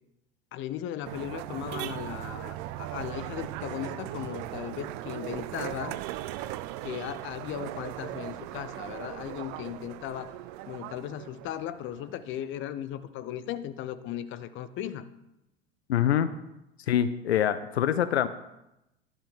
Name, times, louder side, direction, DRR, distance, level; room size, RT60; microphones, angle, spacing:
voice 1, 0.5-6.0 6.8-10.3 10.7-15.1, left 11 dB, 35° left, 14 dB, 0.7 m, -37 dB
sound 1, 1.0-12.6, right 15 dB, 50° right, 0.6 m, -38 dB
voice 2, 15.9-16.3 16.9-18.3, left 10 dB, 75° left, 12 dB, 0.6 m, -24 dB
11.0 x 5.8 x 6.5 m, 0.89 s
figure-of-eight pair, 75°, 32 cm